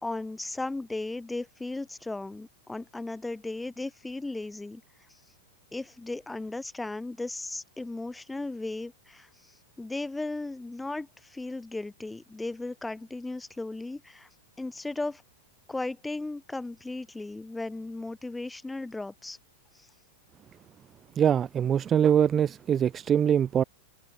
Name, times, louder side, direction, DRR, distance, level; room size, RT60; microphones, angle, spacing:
voice 1, 0.0-4.8 5.7-9.3 9.8-14.3 14.6-15.2 15.7-19.4, left 2 dB, 5° left, 2.9 m, -36 dB
voice 2, 21.1-23.6, right 9 dB, 15° right, 1.5 m, -23 dB
supercardioid pair, 175°, 0 cm